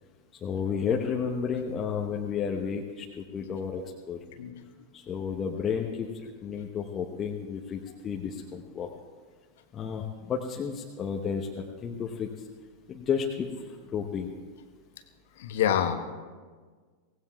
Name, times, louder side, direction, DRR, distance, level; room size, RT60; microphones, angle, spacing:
voice 1, 0.4-4.2 4.9-8.9 9.7-12.3 12.9-14.3, left 6 dB, 25° left, 0 dB, 1.0 m, -32 dB
voice 2, 15.4-15.9, left 9 dB, 55° left, 7 dB, 1.2 m, -26 dB
24.0 x 18.0 x 2.4 m, 1.5 s
figure-of-eight pair, 90°, 0 cm